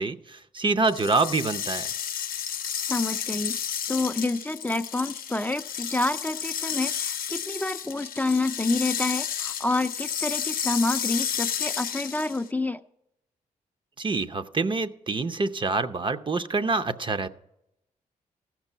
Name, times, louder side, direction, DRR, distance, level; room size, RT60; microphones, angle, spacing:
voice 1, 0.0-1.9 14.0-17.3, right 3 dB, 35° right, 11 dB, 0.6 m, -26 dB
sound 1, 0.8-12.5, left 8 dB, 75° left, 0.6 m, -32 dB
voice 2, 2.9-3.6 3.9-12.8, left 2 dB, 10° left, 7 dB, 0.4 m, -28 dB
15.0 x 6.1 x 5.5 m, 0.83 s
supercardioid pair, 55°, 15 cm